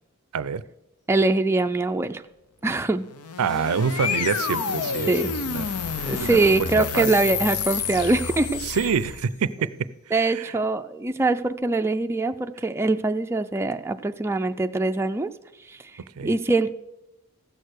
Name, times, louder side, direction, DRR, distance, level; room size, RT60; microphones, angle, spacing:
voice 1, 1.1-2.2 2.6-3.0 5.1-5.3 6.1-8.6 10.1-15.3 15.7-15.8 16.2-16.7, right 3 dB, 10° right, 6 dB, 0.4 m, -23 dB
sound 1, 3.0-9.4, left 6 dB, 85° left, 0.7 m, -29 dB
voice 2, 3.4-5.1 5.5-5.7 6.0-6.4 7.0-7.1 8.6-9.5 10.1-10.5 16.2-16.3, right 6 dB, 70° right, 16 dB, 0.5 m, -26 dB
15.0 x 6.6 x 6.5 m, 0.91 s
head